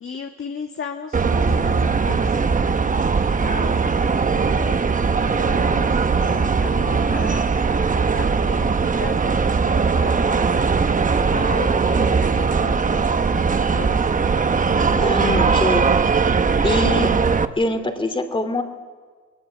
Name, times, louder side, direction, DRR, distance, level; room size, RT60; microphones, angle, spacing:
voice 1, 0.0-2.5 2.8-7.4 8.0-10.5 11.2-14.1, left 5 dB, 45° left, 4 dB, 1.6 m, -35 dB
sound 1, 1.1-17.4, right 5 dB, 25° right, 0.9 m, -19 dB
voice 2, 14.9-16.1 16.6-17.1 17.6-18.6, left 2 dB, 15° left, 8 dB, 2.8 m, -23 dB
21.5 x 19.5 x 8.1 m, 1.5 s
cardioid pair, 90°, 30 cm